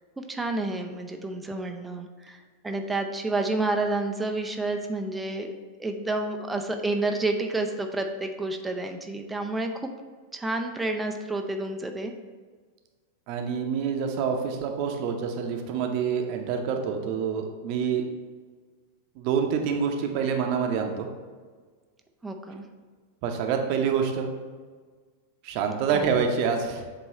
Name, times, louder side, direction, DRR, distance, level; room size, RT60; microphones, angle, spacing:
voice 1, 0.2-2.4 2.6-5.5 5.8-9.9 10.3-12.1 22.2-22.6 25.9-26.1, right 2 dB, 10° right, 4 dB, 0.5 m, -29 dB
voice 2, 13.3-18.1 19.2-21.1 23.2-24.3 25.4-26.8, right 6 dB, 45° right, 4 dB, 0.8 m, -27 dB
7.6 x 3.1 x 4.2 m, 1.5 s
figure-of-eight pair, 90°, 0 cm